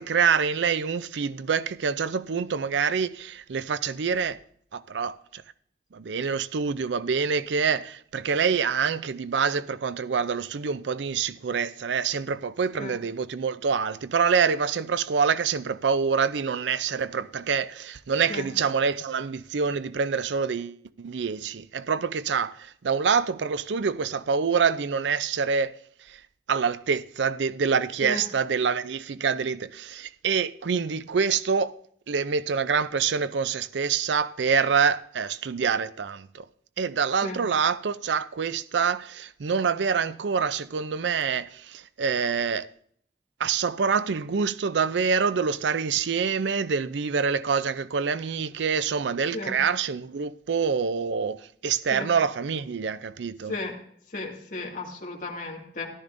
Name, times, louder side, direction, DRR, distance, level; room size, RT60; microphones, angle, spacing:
voice 1, 0.0-4.4 4.7-5.4 5.9-25.8 26.1-26.2 26.5-31.8 32.1-36.4 36.8-42.7 43.4-53.6, right 6 dB, 85° right, 0.5 m, -26 dB
voice 2, 54.1-55.9, left 2 dB, 45° left, 2.2 m, -34 dB
14.0 x 12.0 x 2.6 m
head